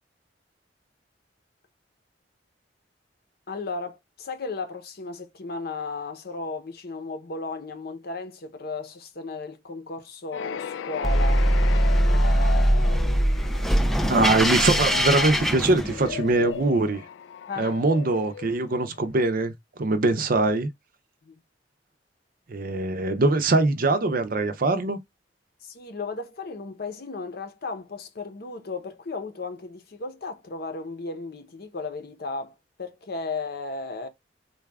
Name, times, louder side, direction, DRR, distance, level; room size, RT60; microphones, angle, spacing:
voice 1, 3.5-11.5 12.0-13.9 17.5-17.8 21.2-21.4 25.6-34.1, left 3 dB, 60° left, 0.7 m, -35 dB
sound 1, 10.3-19.1, left 7 dB, 85° left, 0.3 m, -36 dB
sound 2, 11.0-16.3, equal, ahead, 0.3 m, -22 dB
voice 2, 14.0-17.0 17.6-19.5 19.8-20.7 22.5-25.0, right 2 dB, 55° right, 0.6 m, -22 dB
4.0 x 2.3 x 3.4 m
head